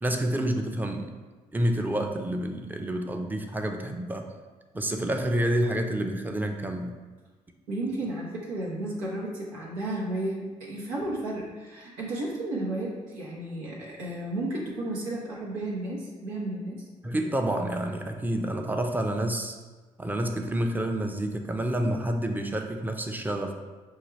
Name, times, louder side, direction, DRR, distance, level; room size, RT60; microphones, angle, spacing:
voice 1, 0.0-1.1 1.5-4.3 4.7-7.0 17.0-19.6 20.0-23.5, right 1 dB, 10° right, 4 dB, 0.5 m, -28 dB
voice 2, 7.7-16.8, right 1 dB, 90° right, -4 dB, 0.7 m, -33 dB
5.4 x 2.3 x 3.1 m, 1.3 s
hypercardioid pair, 45°, 16 cm